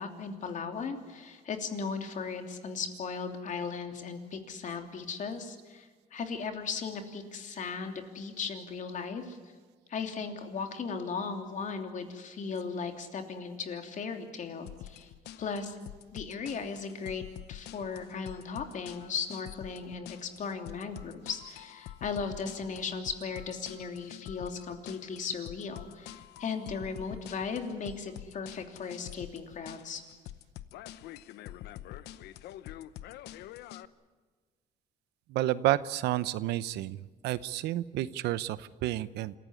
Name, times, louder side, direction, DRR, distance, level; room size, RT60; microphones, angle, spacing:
voice 1, 0.0-9.4 9.9-15.1 15.4-15.8 16.1-30.0, left 5 dB, 50° left, 5 dB, 3.0 m, -37 dB
sound 1, 14.7-33.9, left 13 dB, 80° left, 0.9 m, -46 dB
voice 2, 35.3-37.0 37.2-39.3, right 14 dB, 85° right, 16 dB, 0.8 m, -30 dB
27.0 x 15.5 x 9.8 m, 1.4 s
cardioid pair, 110°, 17 cm